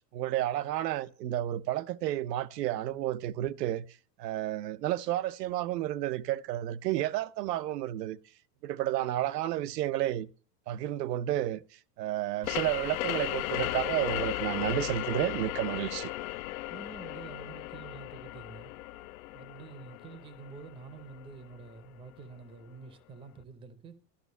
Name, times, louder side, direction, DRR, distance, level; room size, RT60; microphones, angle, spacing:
voice 1, 0.1-3.9 4.2-8.2 8.6-10.3 10.7-16.1, right 13 dB, 90° right, 0.8 m, -31 dB
sound 1, 12.4-21.8, left 17 dB, 60° left, 0.6 m, -36 dB
voice 2, 16.7-18.7 19.3-24.0, right 5 dB, 10° right, 0.6 m, -48 dB
12.0 x 6.0 x 8.2 m
supercardioid pair, 155°, 48 cm